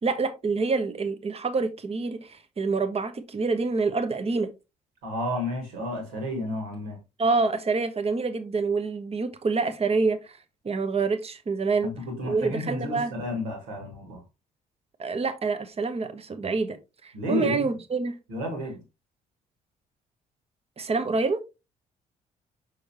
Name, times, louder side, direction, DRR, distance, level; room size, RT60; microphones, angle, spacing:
voice 1, 0.0-4.5 7.2-10.4 10.6-11.9 12.2-13.1 15.0-16.8 17.0-18.2 20.8-21.4, right 4 dB, 30° right, 1.1 m, -27 dB
voice 2, 5.0-7.0 11.8-14.2 17.1-17.6 18.3-18.8, left 1 dB, 70° right, 2.2 m, -31 dB
6.4 x 5.5 x 2.9 m
figure-of-eight pair, 45°, 21 cm